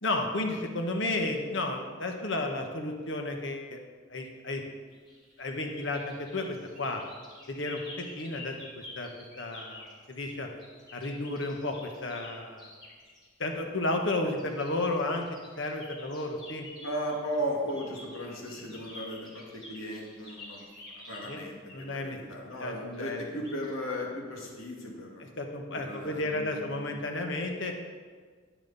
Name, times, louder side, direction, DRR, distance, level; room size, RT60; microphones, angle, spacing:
voice 1, 0.0-3.8 4.1-4.6 5.4-7.0 7.5-9.1 9.4-10.5 10.9-12.7 13.4-15.3 15.6-16.7 21.3-21.4 21.7-22.2 22.6-23.2 25.4-27.7, left 2 dB, 65° left, 3 dB, 1.4 m, -32 dB
sound 1, 4.9-13.3 14.3-21.9 22.5-23.1 23.4-23.7, left 2 dB, 20° left, 2.9 m, -49 dB
voice 2, 16.8-20.6 20.9-25.2 25.7-27.1, equal, 90° left, -1 dB, 2.3 m, -36 dB
10.5 x 10.5 x 4.2 m, 1.5 s
head